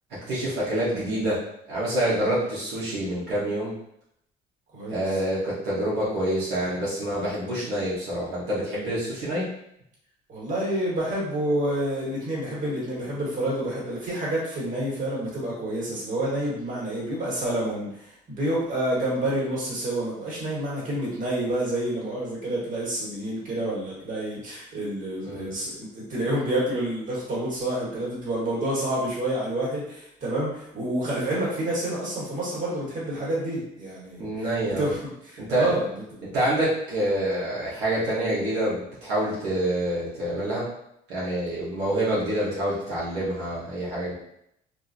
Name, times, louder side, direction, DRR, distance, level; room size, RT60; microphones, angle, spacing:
voice 1, 0.1-1.4 1.7-3.8 4.9-9.5 25.2-25.5 34.2-34.9 35.4-35.7 36.2-40.7 41.1-44.1, right 1 dB, 90° right, -8 dB, 1.1 m, -27 dB
voice 2, 4.7-5.2 10.3-34.3 34.6-35.0 35.2-36.2, right 1 dB, 50° right, -6 dB, 1.5 m, -28 dB
2.6 x 2.5 x 2.5 m, 0.76 s
cardioid pair, 110°, 17 cm